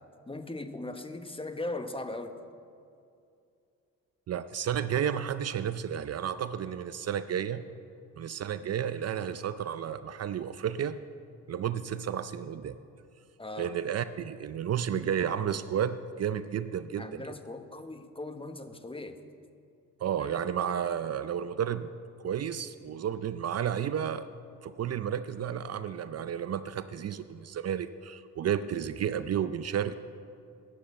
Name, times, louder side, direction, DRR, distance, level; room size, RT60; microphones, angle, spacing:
voice 1, 0.3-2.4 13.4-13.7 17.0-19.2 20.2-20.3, left 2 dB, 15° left, 8 dB, 0.9 m, -39 dB
voice 2, 4.3-7.6 8.2-11.0 11.5-12.8 13.6-17.3 20.0-21.9 22.2-24.3 24.6-29.9, right 9 dB, 50° right, 13 dB, 0.5 m, -32 dB
9.7 x 8.6 x 7.8 m, 2.5 s
cardioid pair, 70°, 32 cm